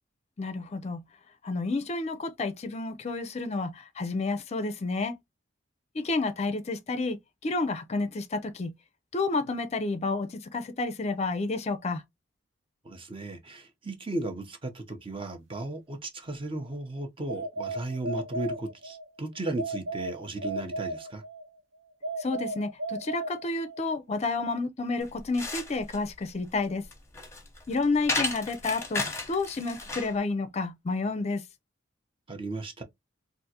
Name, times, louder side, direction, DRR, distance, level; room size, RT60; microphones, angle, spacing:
voice 1, 0.4-1.0 1.4-5.2 5.9-7.2 7.4-8.7 9.1-12.0 22.2-26.8 27.7-31.4, left 3 dB, 35° left, 0.4 m, -30 dB
voice 2, 12.8-21.2 32.3-32.8, right 2 dB, 30° right, 0.7 m, -35 dB
sound 1, 17.3-19.1 19.6-21.5 22.0-23.9, right 2 dB, 85° right, 1.0 m, -35 dB
sound 2, 25.0-30.2, left 2 dB, 15° left, 0.9 m, -34 dB
3.4 x 2.5 x 2.8 m
head